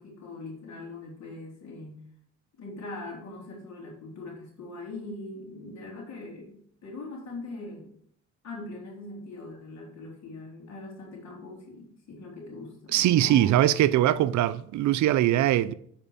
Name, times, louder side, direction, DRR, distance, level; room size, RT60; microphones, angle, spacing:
voice 1, 0.0-2.0 2.6-7.9 8.4-13.8 14.1-14.2, left 2 dB, 65° left, 3.6 m, -41 dB
voice 2, 12.9-15.7, right 13 dB, 75° right, 0.5 m, -22 dB
8.8 x 5.1 x 5.6 m
cardioid pair, 90°, 30 cm